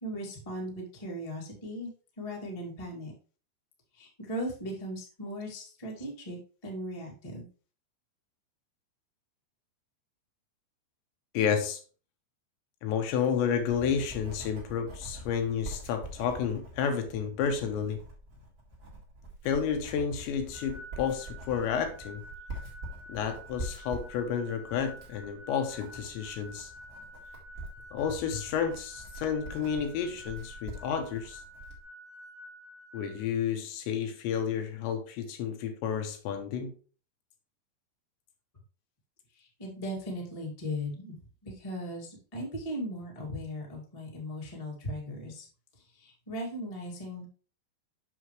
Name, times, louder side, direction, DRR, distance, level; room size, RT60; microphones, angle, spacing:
voice 1, 0.0-1.9 2.2-3.1 3.9-7.4 39.3-41.1 41.4-45.5 45.9-47.2, equal, 25° left, 0.7 m, -38 dB
voice 2, 11.3-11.8 12.8-18.0 19.4-22.2 23.1-26.7 27.9-31.4 32.9-36.7, left 7 dB, 80° left, 3.3 m, -31 dB
Writing, 13.2-31.8, right 1 dB, 40° right, 1.4 m, -45 dB
sound 1, 20.5-33.2, equal, 70° right, 1.8 m, -49 dB
7.8 x 6.4 x 3.1 m
omnidirectional pair, 5.1 m